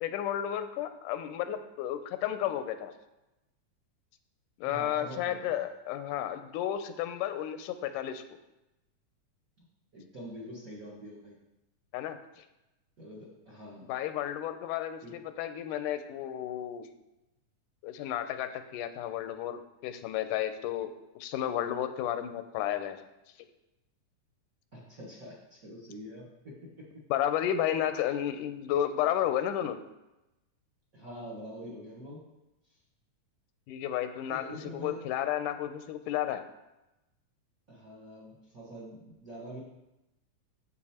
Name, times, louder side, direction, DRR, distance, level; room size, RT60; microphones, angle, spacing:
voice 1, 0.0-2.9 4.6-8.2 11.9-12.2 13.8-16.9 17.8-20.9 21.2-23.0 27.1-29.8 33.7-34.4 34.7-36.4, left 11 dB, 90° left, 9 dB, 2.2 m, -32 dB
voice 2, 4.6-5.6 9.9-11.4 13.0-13.9 15.0-15.2 24.7-26.8 30.9-32.2 32.7-32.8 34.3-35.0 37.7-39.6, equal, 45° right, -4 dB, 1.1 m, -45 dB
7.3 x 6.9 x 4.3 m, 0.96 s
omnidirectional pair, 3.6 m